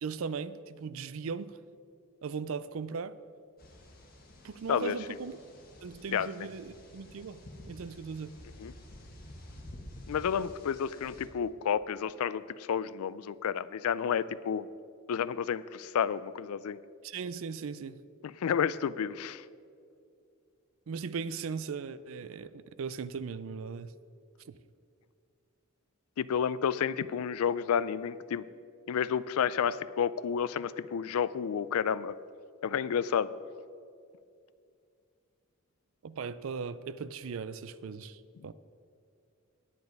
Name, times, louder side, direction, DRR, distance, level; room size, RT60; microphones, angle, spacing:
voice 1, 0.0-1.6 2.2-3.2 4.4-5.4 5.8-7.4 7.7-8.3 17.0-18.0 20.9-23.9 24.5-24.6 36.0-38.5, right 5 dB, 70° right, 15 dB, 0.4 m, -38 dB
sound 1, 3.6-11.3, left 1 dB, 40° left, 1.5 m, -50 dB
voice 2, 10.1-14.7 15.1-16.8 18.2-19.4 26.2-28.4 28.9-32.1 32.6-33.3, left 7 dB, 85° left, 17 dB, 0.4 m, -30 dB
9.6 x 9.4 x 5.3 m, 2.4 s
head